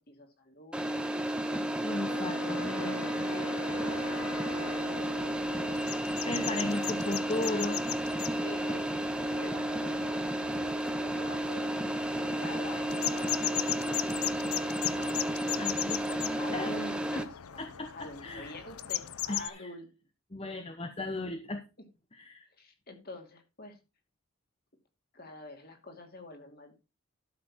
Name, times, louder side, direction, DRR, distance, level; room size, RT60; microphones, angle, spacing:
voice 1, 0.1-1.7 2.3-5.8 6.7-7.8 8.3-10.1 10.5-11.7 12.4-13.3 13.8-15.4 16.1-20.0 22.6-23.8 25.1-26.7, left 2 dB, 45° left, 5 dB, 2.6 m, -47 dB
sound 1, 0.7-17.2, right 1 dB, 5° right, 0.9 m, -32 dB
voice 2, 1.8-3.3 6.2-7.8 15.6-16.7 17.6-18.5 19.3-19.7 20.3-21.6 22.1-22.5, left 2 dB, 25° left, 7 dB, 0.9 m, -36 dB
Wind instrument woodwind instrument, 1.9-6.0, left 5 dB, 60° left, 0.9 m, -43 dB
sound 2, 3.7-19.5, left 12 dB, 90° left, 0.7 m, -39 dB
12.5 x 6.8 x 4.2 m, 0.28 s
head